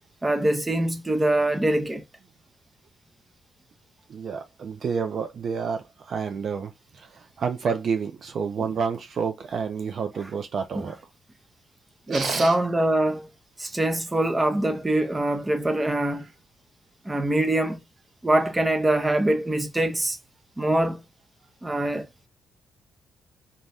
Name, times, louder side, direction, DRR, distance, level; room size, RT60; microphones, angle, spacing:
voice 1, 0.2-2.0 10.7-10.9 12.1-13.3 13.6-16.2 17.0-17.8 18.2-20.2 20.6-21.0 21.6-22.1, right 1 dB, 15° right, 0.6 m, -23 dB
voice 2, 4.1-6.7 7.0-7.1 7.4-11.0 12.1-12.5, right 6 dB, 55° right, 0.4 m, -29 dB
2.6 x 2.2 x 3.4 m
cardioid pair, 90°, 0 cm